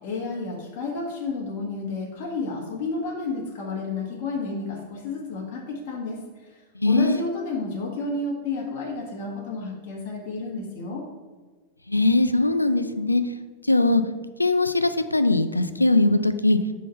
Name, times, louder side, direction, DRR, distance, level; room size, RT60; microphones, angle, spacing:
voice 1, 0.0-6.2 6.5-11.0, left 3 dB, 45° left, -2 dB, 1.2 m, -31 dB
voice 2, 6.8-7.2 11.9-13.2 13.7-14.0 14.4-16.6, left 2 dB, 85° left, 11 dB, 0.3 m, -20 dB
5.1 x 3.8 x 5.5 m, 1.4 s
figure-of-eight pair, 90°, 0 cm